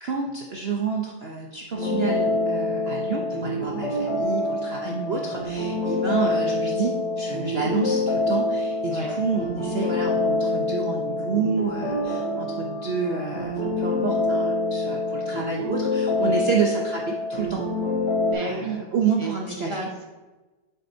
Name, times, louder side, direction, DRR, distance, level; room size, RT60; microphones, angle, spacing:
voice 1, 0.0-17.6 18.4-19.9, right 5 dB, 55° right, 0 dB, 0.7 m, -29 dB
sound 1, 1.7-18.3, left 2 dB, 80° left, 2.2 m, -26 dB
voice 2, 4.8-5.2 8.9-9.1 16.2-16.3 18.3-18.8 19.2-19.3 19.7-20.0, right 2 dB, 25° left, -2 dB, 0.7 m, -32 dB
8.1 x 7.5 x 2.7 m, 1.2 s
omnidirectional pair, 1.8 m